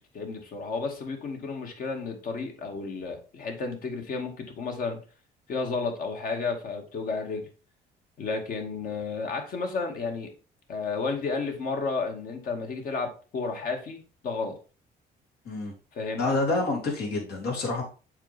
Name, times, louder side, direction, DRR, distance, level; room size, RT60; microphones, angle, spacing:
voice 1, 0.1-5.0 5.5-7.5 8.2-10.3 10.7-14.6 15.9-16.4, left 4 dB, 55° left, 3 dB, 2.2 m, -32 dB
voice 2, 16.2-17.8, left 2 dB, 75° left, 0 dB, 3.6 m, -27 dB
7.2 x 5.5 x 3.5 m, 0.35 s
cardioid pair, 110°, 17 cm